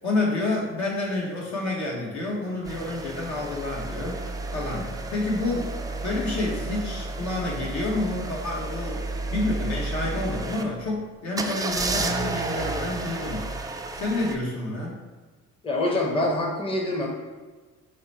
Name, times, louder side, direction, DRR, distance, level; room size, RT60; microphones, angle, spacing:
voice 1, 0.0-4.2 4.5-5.7 6.0-13.6 13.9-15.0, left 2 dB, 70° left, -3 dB, 1.2 m, -29 dB
sound 1, 2.7-10.6 11.4-14.4, right 2 dB, 15° right, 0.3 m, -31 dB
voice 2, 15.6-17.1, left 1 dB, 20° left, -1 dB, 0.7 m, -25 dB
4.9 x 2.2 x 4.1 m, 1.3 s
cardioid pair, 90°, 30 cm